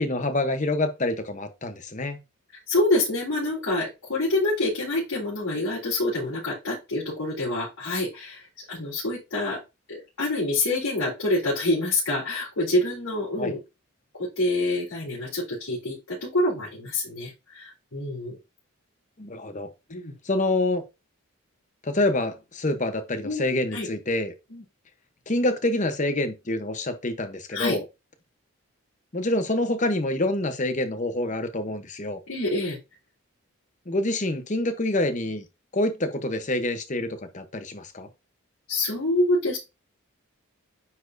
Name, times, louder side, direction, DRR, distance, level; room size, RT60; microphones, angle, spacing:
voice 1, 0.0-2.2 13.4-13.5 19.2-19.7 20.2-20.8 21.8-24.3 25.3-27.8 29.1-32.2 33.9-35.4 35.7-38.1, left 1 dB, 35° left, 0.9 m, -26 dB
voice 2, 2.7-8.4 8.7-9.6 9.9-13.6 14.2-18.4 19.9-20.1 23.2-23.4 23.7-23.9 24.5-24.6 27.5-27.8 32.3-32.8 38.7-39.6, left 2 dB, 85° left, 3.6 m, -26 dB
9.6 x 4.3 x 2.6 m
head